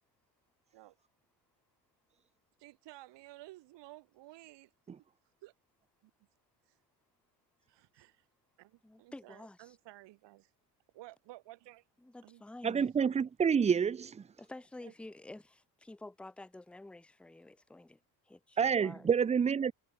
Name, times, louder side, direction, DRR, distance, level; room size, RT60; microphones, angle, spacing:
voice 1, 2.6-4.7 5.4-5.5 7.7-8.2 8.6-8.7 9.0-10.5 10.9-11.8 12.2-12.4 14.8-14.9, right 18 dB, 65° right, 3.4 m, -53 dB
voice 2, 8.8-9.8 12.0-12.9 14.4-18.0 18.3-19.1, left 2 dB, ahead, 0.9 m, -50 dB
voice 3, 12.6-14.3 18.6-19.7, right 7 dB, 15° right, 0.5 m, -28 dB
cardioid pair, 155°, 46 cm